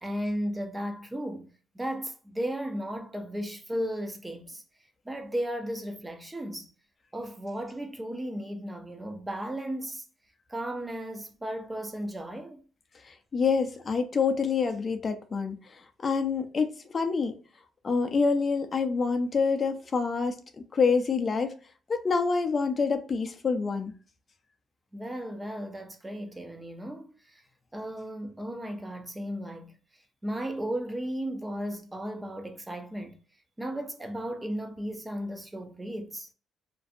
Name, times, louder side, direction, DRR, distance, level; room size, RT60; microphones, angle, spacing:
voice 1, 0.0-4.6 5.1-6.7 7.1-10.0 10.5-12.6 24.9-27.4 27.7-29.8 30.2-33.2 33.6-36.3, equal, 15° right, 0.5 m, -35 dB
voice 2, 13.0-17.4 17.8-20.4 20.7-21.5 21.9-23.9, left 5 dB, 40° left, 0.4 m, -27 dB
2.5 x 2.2 x 2.5 m
cardioid pair, 90°, 0 cm